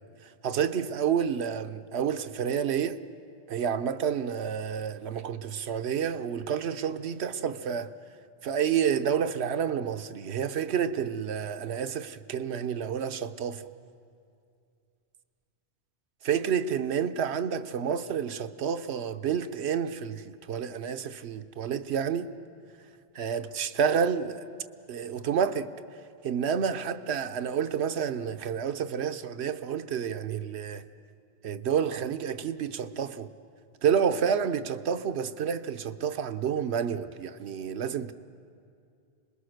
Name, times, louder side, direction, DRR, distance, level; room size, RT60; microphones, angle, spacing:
voice 1, 0.4-3.0 3.5-7.9 8.4-13.7 16.2-22.4 23.1-24.5 24.9-25.7 26.2-30.8 31.4-33.3 33.8-38.1, right 7 dB, 90° right, 1.0 m, -29 dB
26.5 x 21.0 x 6.5 m
omnidirectional pair, 1.1 m